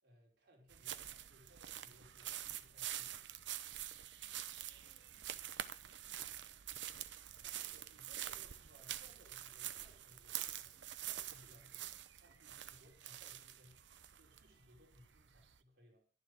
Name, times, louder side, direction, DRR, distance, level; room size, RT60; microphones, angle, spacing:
voice 1, 0.0-3.4 7.4-10.8 11.1-16.0, equal, 60° right, 4.9 m, -66 dB
sound 1, 0.7-15.6, right 12 dB, 80° right, 0.9 m, -47 dB
voice 2, 4.1-6.8 7.3-7.6, left 1 dB, 40° left, 6.1 m, -78 dB
12.0 x 11.0 x 6.3 m
head